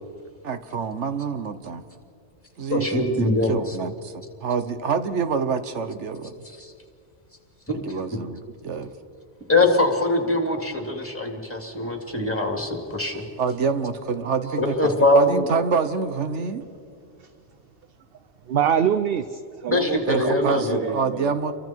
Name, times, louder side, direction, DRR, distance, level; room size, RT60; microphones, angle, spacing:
voice 1, 0.4-1.8 2.6-6.4 7.7-8.9 13.4-16.7 20.1-21.5, right 5 dB, 80° right, 10 dB, 1.4 m, -27 dB
voice 2, 2.7-3.8 6.6-6.7 9.5-13.2 14.4-15.5 19.7-20.9, left 2 dB, 10° left, 2 dB, 2.9 m, -22 dB
voice 3, 18.4-21.4, right 8 dB, 60° right, 10 dB, 0.9 m, -26 dB
29.5 x 24.0 x 4.6 m, 2.4 s
omnidirectional pair, 1.2 m